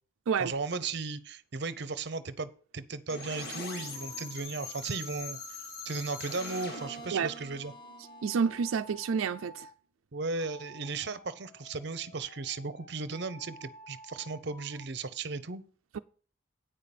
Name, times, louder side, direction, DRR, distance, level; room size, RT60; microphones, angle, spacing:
voice 1, 0.4-7.7 10.1-15.6, right 4 dB, 55° right, 0.7 m, -36 dB
sound 1, 3.1-8.9, left 3 dB, 50° left, 2.3 m, -43 dB
sound 2, 3.4-9.8 10.3-14.9, right 1 dB, 35° left, 1.1 m, -52 dB
voice 2, 8.2-9.7 15.9-16.0, right 6 dB, 85° right, 0.4 m, -29 dB
8.9 x 5.7 x 6.8 m
head